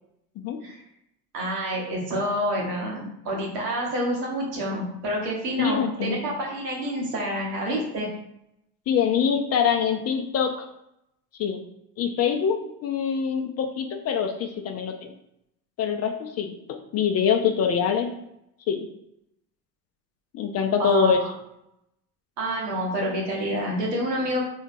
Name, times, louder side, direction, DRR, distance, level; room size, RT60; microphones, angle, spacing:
voice 1, 1.3-8.1 20.8-21.3 22.4-24.5, equal, 80° right, -2 dB, 1.1 m, -28 dB
voice 2, 5.6-6.2 8.9-10.5 11.4-11.6 12.0-15.1 15.8-16.5 16.9-18.1 18.7-18.8 20.3-21.2, left 7 dB, 35° left, 5 dB, 0.4 m, -24 dB
3.9 x 2.8 x 2.6 m, 0.80 s
hypercardioid pair, 70°, 47 cm